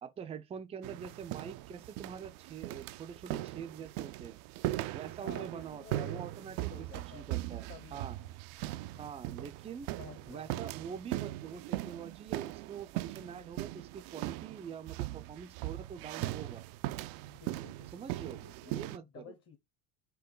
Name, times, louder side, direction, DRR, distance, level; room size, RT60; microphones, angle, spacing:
voice 1, 0.0-4.4 4.9-6.9 7.1-7.6 7.9-8.2 9.0-9.9 10.3-16.6 17.9-18.4 18.6-19.2, right 7 dB, 15° right, 0.4 m, -45 dB
sound 1, 0.8-19.0, right 16 dB, 80° right, 0.5 m, -39 dB
voice 2, 5.1-6.3 6.6-8.3 8.9-9.1 10.0-10.6 17.3-18.1 18.3-19.6, left 7 dB, 35° left, 0.9 m, -53 dB
4.6 x 3.0 x 3.8 m
supercardioid pair, 115°, 41 cm